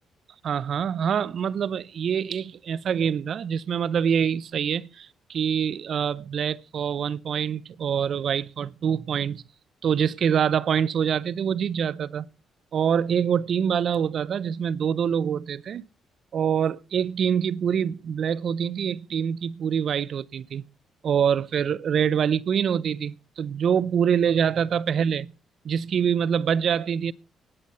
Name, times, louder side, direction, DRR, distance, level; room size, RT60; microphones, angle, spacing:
voice 1, 0.4-9.4 9.8-12.3 12.7-15.8 16.3-20.6 21.0-25.3 25.6-27.1, right 8 dB, 60° right, 0.6 m, -25 dB
18.5 x 8.0 x 5.5 m
cardioid pair, 90°, 0 cm